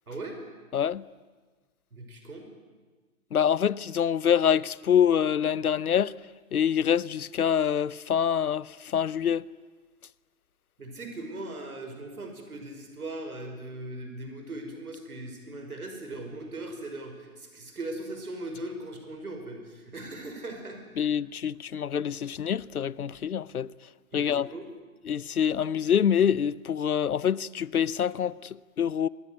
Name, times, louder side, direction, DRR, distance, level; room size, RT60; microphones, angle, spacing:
voice 1, 0.1-0.4 1.9-2.5 10.8-20.8 24.1-24.7, right 2 dB, 80° right, 5.9 m, -39 dB
voice 2, 0.7-1.0 3.3-6.1 6.5-9.5 21.0-23.7 24.1-24.5 25.1-29.1, left 8 dB, 80° left, 0.9 m, -26 dB
25.5 x 20.0 x 9.5 m
figure-of-eight pair, 135°, 43 cm